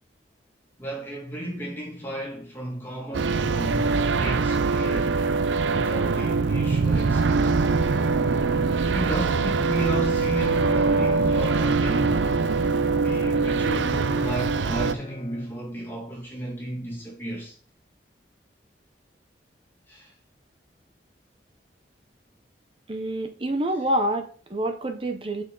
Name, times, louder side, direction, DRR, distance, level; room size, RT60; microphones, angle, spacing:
voice 1, 0.8-5.2 5.7-7.7 8.9-12.2 12.9-17.6 19.9-20.1, right 1 dB, 15° left, 2.5 m, -34 dB
sound 1, 3.1-14.9, right 4 dB, 90° right, 0.5 m, -23 dB
Bowed string instrument, 7.6-15.9, left 1 dB, 30° left, 0.8 m, -39 dB
voice 2, 22.9-25.4, right 1 dB, 30° right, 0.7 m, -27 dB
6.2 x 6.2 x 3.8 m
head